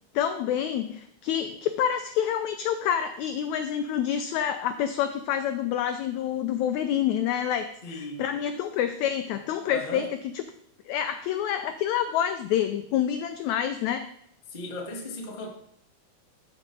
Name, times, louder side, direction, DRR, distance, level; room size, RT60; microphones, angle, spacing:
voice 1, 0.2-10.1 10.3-10.4 10.9-14.1, left 9 dB, 85° left, 9 dB, 1.6 m, -27 dB
voice 2, 7.8-8.3 9.6-10.1 14.5-15.5, left 1 dB, 70° left, -1 dB, 0.4 m, -36 dB
13.0 x 5.3 x 3.7 m, 0.72 s
omnidirectional pair, 3.8 m